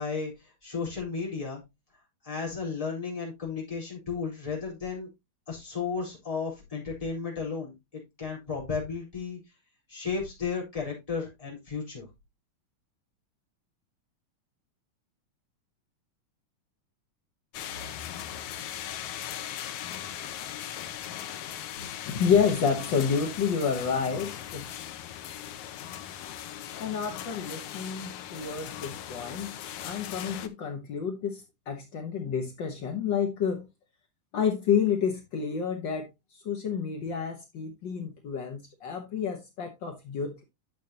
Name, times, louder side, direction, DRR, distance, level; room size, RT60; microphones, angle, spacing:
voice 1, 0.0-1.6 2.2-5.1 5.5-7.7 8.2-9.4 9.9-12.1, left 5 dB, 10° left, 4.0 m, -34 dB
sound 1, 17.5-30.5, left 10 dB, 85° left, 1.4 m, -39 dB
voice 2, 21.8-24.7 26.8-29.5 29.8-33.7 34.3-36.1 36.3-40.4, left 6 dB, 70° left, 1.1 m, -29 dB
11.0 x 6.5 x 2.9 m
omnidirectional pair, 3.8 m